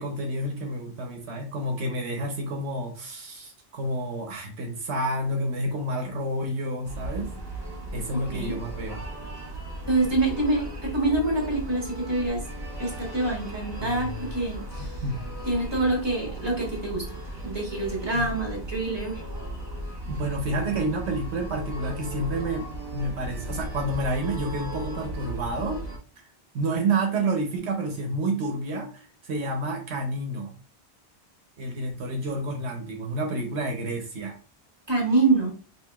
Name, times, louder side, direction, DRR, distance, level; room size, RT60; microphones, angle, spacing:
voice 1, 0.0-7.3 7.9-9.0 13.8-14.1 15.0-15.2 18.1-18.3 20.1-25.8 26.5-30.5 31.6-34.4, right 1 dB, 75° right, 2 dB, 1.0 m, -29 dB
sound 1, 6.8-26.0, right 1 dB, 45° right, 1.4 m, -36 dB
voice 2, 8.1-8.6 9.9-12.4 12.8-15.0 15.4-17.0 17.4-19.2 34.9-35.5, right 2 dB, 25° right, -1 dB, 1.4 m, -26 dB
4.7 x 3.0 x 2.2 m, 0.37 s
omnidirectional pair, 1.1 m